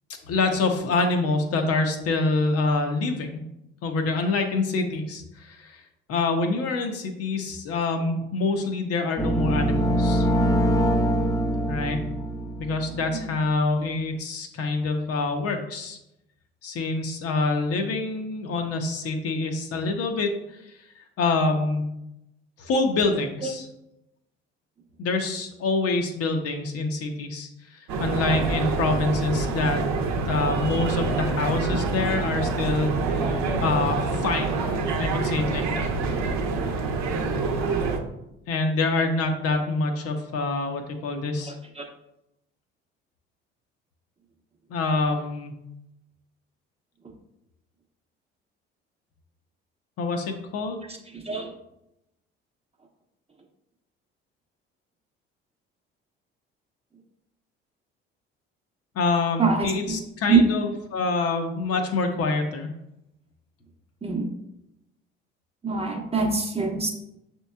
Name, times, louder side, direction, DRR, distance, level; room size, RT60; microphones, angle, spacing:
voice 1, 0.3-3.4 3.8-5.8 6.1-10.3 11.7-12.0 12.6-16.0 16.6-20.6 21.2-21.9 22.6-23.7 25.0-29.8 30.3-33.0 33.6-34.6 35.0-35.9 38.5-41.5 44.7-45.5 50.0-50.8 59.0-62.7, left 3 dB, 50° left, 4 dB, 0.7 m, -26 dB
sound 1, 9.2-13.1, equal, 10° left, 0.5 m, -23 dB
voice 2, 12.9-13.2 41.4-41.9 51.1-51.5 59.4-60.0 60.3-60.5 64.0-64.3 65.6-66.9, right 4 dB, 20° right, 2 dB, 0.9 m, -24 dB
sound 2, 27.9-38.0, right 3 dB, 60° right, 0.8 m, -26 dB
6.1 x 2.9 x 2.2 m, 0.86 s
hypercardioid pair, 55°, 31 cm